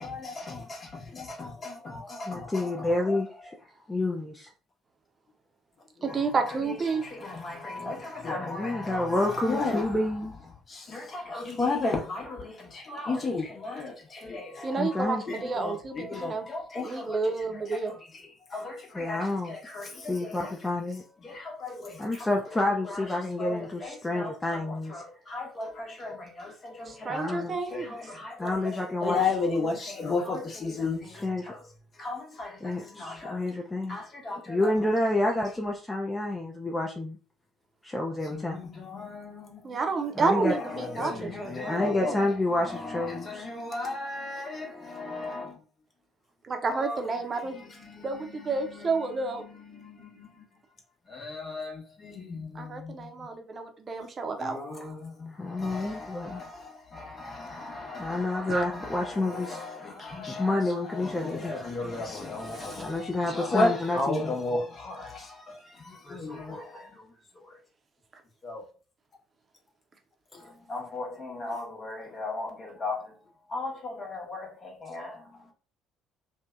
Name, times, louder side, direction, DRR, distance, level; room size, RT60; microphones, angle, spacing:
voice 1, 0.0-3.2 6.1-10.1 10.7-20.6 21.2-22.6 22.8-23.1 23.4-31.6 31.9-33.4 33.9-34.7 35.1-35.2 38.2-45.6 46.6-50.4 51.1-53.1 54.4-67.6 68.4-68.6 70.3-73.2 73.5-75.5, left 3 dB, 40° left, 0.9 m, -35 dB
voice 2, 2.3-3.5 3.9-4.5 8.4-10.3 14.7-15.2 18.9-19.6 20.0-21.0 22.0-25.0 27.1-27.6 28.4-29.2 31.2-31.5 32.6-34.0 34.5-37.2 37.8-38.6 40.1-40.5 41.7-43.5 55.3-56.4 58.0-59.6 60.3-61.5 62.8-64.3, left 2 dB, 15° left, 0.4 m, -29 dB
voice 3, 6.0-7.0 14.6-16.4 16.8-17.9 26.9-27.9 39.6-42.0 46.4-47.6 48.0-49.4 52.6-54.9 58.5-58.7 62.5-62.8 63.2-63.3, right 4 dB, 40° right, 0.6 m, -30 dB
2.6 x 2.1 x 2.4 m
hypercardioid pair, 50°, 0 cm